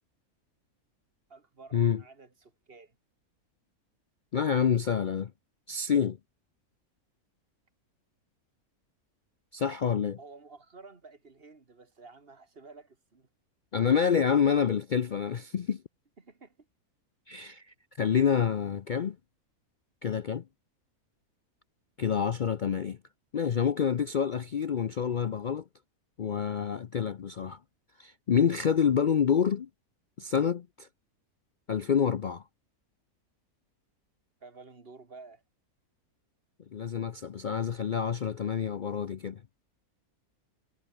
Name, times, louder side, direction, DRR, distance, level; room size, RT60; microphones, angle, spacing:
voice 1, 1.3-3.0 10.2-13.3 16.2-16.7 34.4-35.4, right 4 dB, 40° right, 2.2 m, -52 dB
voice 2, 4.3-5.3 5.7-6.2 9.5-10.2 13.7-15.8 17.3-17.7 18.0-19.2 20.0-20.4 22.0-23.0 23.3-25.6 26.2-27.6 28.0-29.7 30.2-30.9 31.7-32.4 36.7-39.4, left 7 dB, 55° left, 0.5 m, -27 dB
omnidirectional pair, 1.6 m